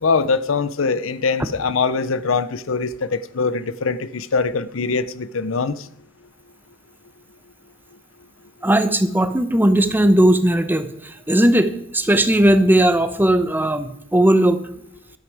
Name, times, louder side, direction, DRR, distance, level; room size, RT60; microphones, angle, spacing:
voice 1, 0.0-5.9, left 4 dB, 90° left, 0.7 m, -22 dB
voice 2, 8.6-14.6, right 1 dB, 10° right, 0.9 m, -17 dB
13.0 x 12.5 x 4.9 m
head